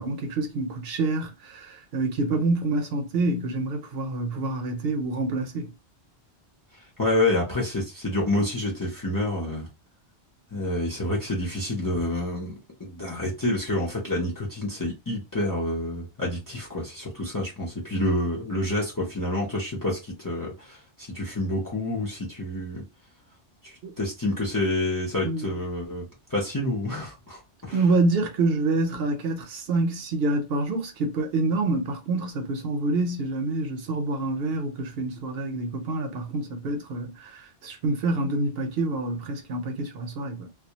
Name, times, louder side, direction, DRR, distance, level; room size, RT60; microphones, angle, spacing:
voice 1, 0.0-5.7 23.8-23.9 25.2-25.5 27.7-40.5, right 2 dB, 70° right, 0.8 m, -27 dB
voice 2, 7.0-9.7 10.5-12.5 12.8-22.8 23.6-26.0 26.3-27.8, left 1 dB, 25° left, 0.5 m, -28 dB
2.2 x 2.1 x 2.7 m
omnidirectional pair, 1.1 m